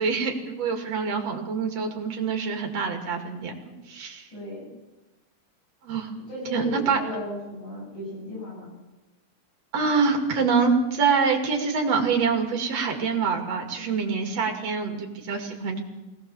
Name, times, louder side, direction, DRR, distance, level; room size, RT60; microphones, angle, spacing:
voice 1, 0.0-3.5 3.9-4.2 5.8-6.1 6.5-7.0 9.7-15.8, right 5 dB, 45° right, 3 dB, 3.2 m, -25 dB
voice 2, 4.3-4.7 6.3-8.7, left 1 dB, 50° left, -4 dB, 9.6 m, -35 dB
21.5 x 18.5 x 7.2 m, 1.1 s
omnidirectional pair, 4.4 m